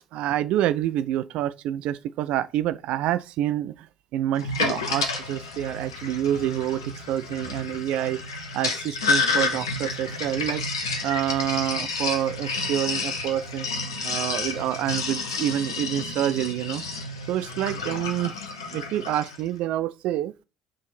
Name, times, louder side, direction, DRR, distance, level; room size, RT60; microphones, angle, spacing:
voice 1, 0.0-3.9 4.1-13.7 14.0-16.8 17.3-18.3 18.7-20.3, right 12 dB, 55° right, 0.3 m, -27 dB
Sink (filling or washing), 4.4-19.4, left 3 dB, 75° left, 0.9 m, -30 dB
6.4 x 3.7 x 5.8 m
figure-of-eight pair, 55°, 2 cm